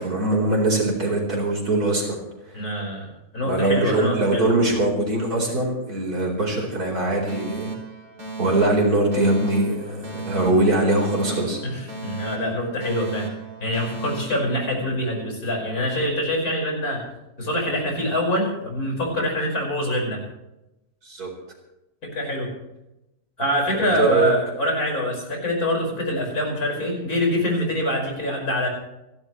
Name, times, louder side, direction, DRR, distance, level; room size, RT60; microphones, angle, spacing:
voice 1, 0.0-2.7 3.4-7.7 8.4-11.6 21.0-21.3 23.8-24.3, right 2 dB, 70° right, 0 dB, 4.9 m, -22 dB
voice 2, 2.5-3.1 3.3-4.5 11.6-13.3 13.6-17.0 17.4-20.2 22.1-22.5 23.4-28.7, left 1 dB, 65° left, 0 dB, 5.9 m, -25 dB
Alarm, 7.3-15.3, right 4 dB, 85° right, 4.3 m, -36 dB
29.5 x 12.0 x 3.2 m, 0.92 s
omnidirectional pair, 1.7 m